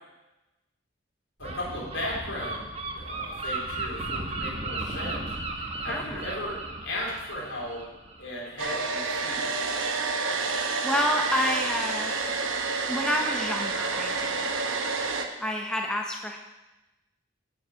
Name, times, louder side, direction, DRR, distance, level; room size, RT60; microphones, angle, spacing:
voice 1, 1.4-7.8 8.2-9.5, left 1 dB, 75° left, -4 dB, 3.2 m, -36 dB
Gull seagull, 1.4-8.9, right 2 dB, 30° right, 0.9 m, -35 dB
voice 2, 5.9-6.2 10.8-12.1 12.9-14.5 15.4-16.4, left 1 dB, 5° left, 1 dB, 0.6 m, -29 dB
Domestic sounds home sounds, 8.6-15.3, right 4 dB, 80° right, 0.8 m, -29 dB
7.4 x 7.1 x 5.6 m, 1.0 s
head